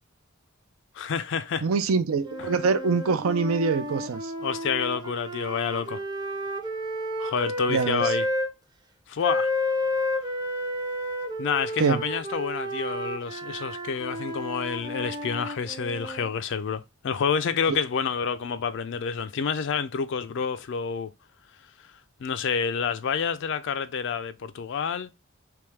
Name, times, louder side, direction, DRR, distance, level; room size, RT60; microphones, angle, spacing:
voice 1, 1.0-1.7 2.4-2.5 4.4-6.0 7.2-8.2 9.1-9.5 11.4-21.1 22.2-25.1, left 6 dB, 60° left, 0.4 m, -28 dB
voice 2, 1.6-4.3 7.7-8.1 11.8-12.0 17.7-17.8, right 5 dB, 75° right, 0.5 m, -24 dB
sound 1, 2.2-8.5 9.2-16.3, left 1 dB, 20° right, 0.6 m, -31 dB
3.5 x 3.1 x 3.2 m
head